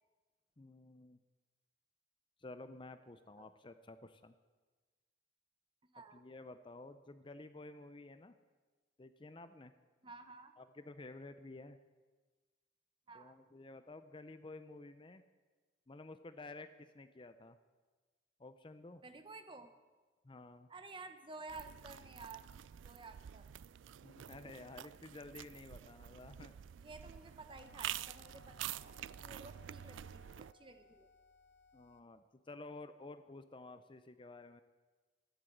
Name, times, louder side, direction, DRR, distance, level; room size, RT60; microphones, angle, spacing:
voice 1, 0.6-1.2 2.4-4.3 6.1-8.3 9.0-9.7 10.6-11.8 13.1-15.2 15.9-17.6 18.4-19.0 20.2-20.7 24.0-26.5 31.7-34.6, left 2 dB, 25° left, 11 dB, 0.6 m, -52 dB
voice 2, 10.0-10.5 13.1-13.3 19.0-19.7 20.7-22.5 22.8-23.5 26.8-31.1, right 3 dB, 25° right, 9 dB, 1.0 m, -53 dB
sound 1, 21.5-30.5, right 11 dB, 85° right, 0.3 m, -48 dB
sound 2, 27.5-32.0, left 3 dB, 70° left, 1.1 m, -64 dB
13.5 x 11.0 x 7.9 m, 1.3 s
head